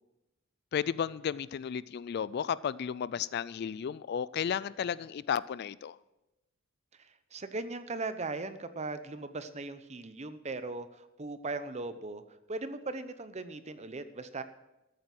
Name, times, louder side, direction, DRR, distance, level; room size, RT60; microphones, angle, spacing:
voice 1, 0.7-6.0, left 8 dB, 50° left, 19 dB, 0.3 m, -33 dB
voice 2, 6.9-12.2 12.5-14.4, right 3 dB, 30° right, 11 dB, 0.8 m, -38 dB
13.5 x 9.0 x 6.0 m, 0.97 s
head